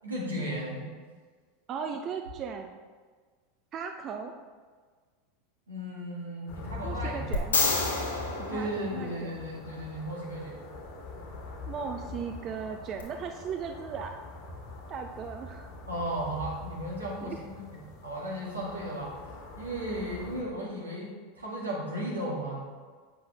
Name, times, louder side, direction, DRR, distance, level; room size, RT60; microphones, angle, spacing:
voice 1, 0.0-0.9 5.7-7.5 8.5-10.6 15.9-19.1 19.6-22.6, right 1 dB, 85° right, -5 dB, 2.0 m, -35 dB
voice 2, 1.7-2.8 3.7-4.3 6.8-7.6 8.4-9.4 11.7-14.2 14.9-15.7 17.2-17.4 20.1-20.3, right 6 dB, 40° right, 5 dB, 0.5 m, -37 dB
sound 1, 6.5-20.4, left 3 dB, 50° left, 1.4 m, -43 dB
sound 2, 7.3-9.6 13.0-13.1, left 3 dB, 80° left, 1.2 m, -29 dB
8.0 x 6.1 x 3.4 m, 1.5 s
figure-of-eight pair, 80°, 0 cm